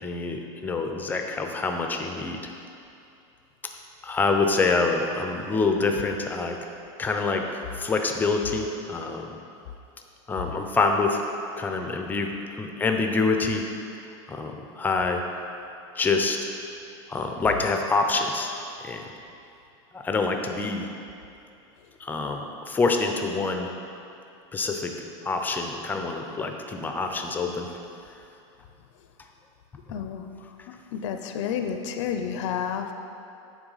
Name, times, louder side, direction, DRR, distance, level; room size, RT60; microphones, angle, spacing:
voice 1, 0.0-2.4 4.0-6.6 7.0-7.4 7.8-9.4 10.3-11.2 11.6-13.6 14.3-15.2 16.0-16.4 17.1-18.5 18.8-19.0 19.9-20.9 22.0-23.7 24.5-24.9 25.2-27.7, left 3 dB, 10° left, 4 dB, 0.4 m, -26 dB
voice 2, 29.9-30.5 30.9-32.9, left 8 dB, 75° left, 6 dB, 0.5 m, -30 dB
8.9 x 3.6 x 3.9 m, 2.7 s
supercardioid pair, 145°, 16 cm